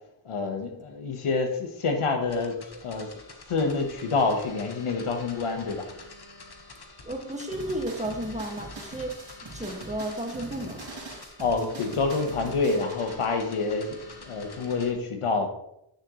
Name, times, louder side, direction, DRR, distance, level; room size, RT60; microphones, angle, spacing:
voice 1, 0.2-3.1 3.5-5.9 11.4-15.5, left 4 dB, 90° left, 4 dB, 1.3 m, -27 dB
sound 1, 2.2-14.9, left 2 dB, 50° left, 1.5 m, -47 dB
voice 2, 7.0-10.9, right 1 dB, 15° right, 1 dB, 1.9 m, -33 dB
sound 2, 7.5-13.2, right 2 dB, 65° right, 3.1 m, -43 dB
9.7 x 6.5 x 3.2 m, 0.80 s
cardioid pair, 50°, 49 cm